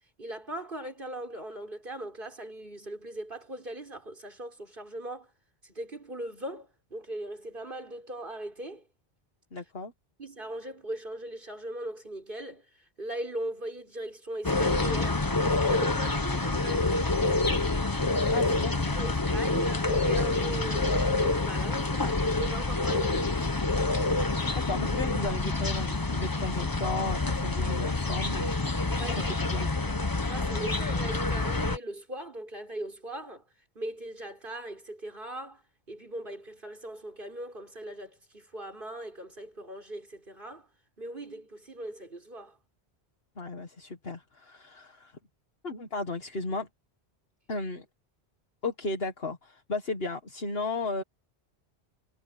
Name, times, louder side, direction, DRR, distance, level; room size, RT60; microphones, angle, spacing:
voice 1, 0.2-5.3 5.6-8.8 10.2-15.3 15.6-17.4 18.3-18.6 18.9-23.6 28.9-33.4 33.8-35.6 35.9-40.7 41.0-42.6, right 1 dB, 50° right, 5.9 m, -39 dB
voice 2, 9.5-9.9 18.3-19.0 24.2-29.0 29.4-29.7 43.4-45.2 45.6-46.7 47.5-47.9 48.6-51.0, left 3 dB, 65° left, 1.9 m, -35 dB
sound 1, 14.4-31.8, left 3 dB, 20° left, 0.9 m, -27 dB
omnidirectional pair, 1.1 m